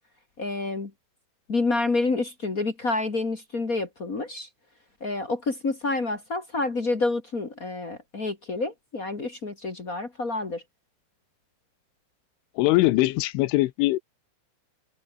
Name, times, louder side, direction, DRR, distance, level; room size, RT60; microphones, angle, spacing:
voice 1, 0.4-0.9 1.5-4.5 5.0-10.6, left 3 dB, 45° left, 1.1 m, -28 dB
voice 2, 12.6-14.0, left 19 dB, 85° left, 3.4 m, -21 dB
omnidirectional pair, 5.5 m